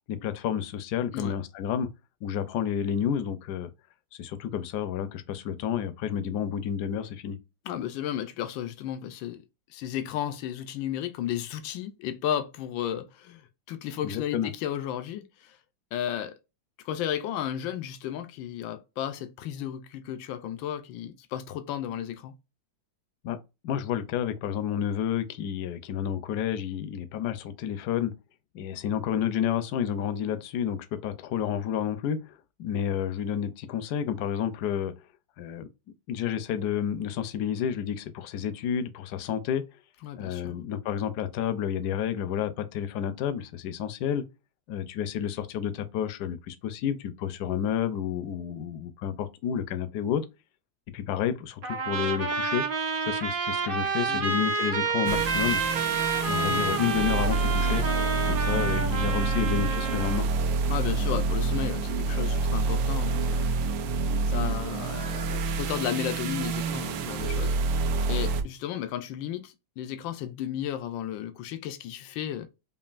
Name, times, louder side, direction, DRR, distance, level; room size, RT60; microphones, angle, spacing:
voice 1, 0.1-1.9 2.2-3.7 4.2-7.4 14.0-14.5 23.2-23.4 23.6-28.1 28.5-32.3 32.6-34.9 35.4-35.7 36.1-39.6 40.2-44.2 44.7-50.2 50.9-52.7 53.0-55.6 56.2-57.8 58.2-60.3, left 9 dB, 70° left, 1.0 m, -30 dB
voice 2, 7.6-9.4 9.7-15.6 15.9-16.4 16.8-22.3 40.0-40.6 54.1-54.3 60.7-63.5 64.3-67.6 68.1-72.5, left 10 dB, 90° left, 1.3 m, -33 dB
Trumpet, 51.6-60.3, right 4 dB, 60° right, 0.5 m, -29 dB
sound 1, 55.1-68.4, right 3 dB, 80° right, 1.3 m, -27 dB
5.3 x 2.5 x 2.4 m
omnidirectional pair, 2.0 m